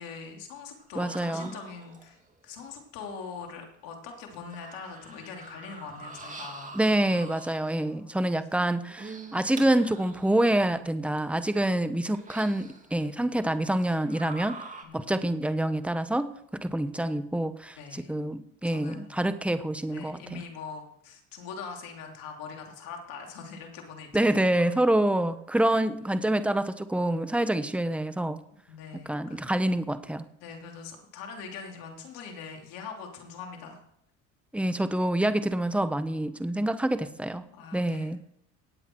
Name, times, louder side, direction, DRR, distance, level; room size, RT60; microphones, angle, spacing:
voice 1, 0.0-2.2 2.4-6.7 7.6-8.2 14.8-15.1 17.8-18.2 18.6-19.2 19.9-24.5 28.7-29.5 30.4-33.8 37.5-38.3, left 5 dB, 80° left, 2 dB, 3.1 m, -42 dB
sound 1, 0.8-2.3 3.6-3.7 4.3-7.8 8.8-10.4 11.0-11.1 12.1-13.0 13.8-14.8, right 3 dB, 20° right, 2.6 m, -45 dB
voice 2, 0.9-1.5 6.7-14.6 14.9-16.3 16.6-20.4 24.1-28.4 29.1-30.2 34.5-37.4 37.7-38.2, right 1 dB, 5° right, 11 dB, 1.1 m, -27 dB
18.0 x 8.4 x 4.6 m, 0.74 s
supercardioid pair, 75°, 34 cm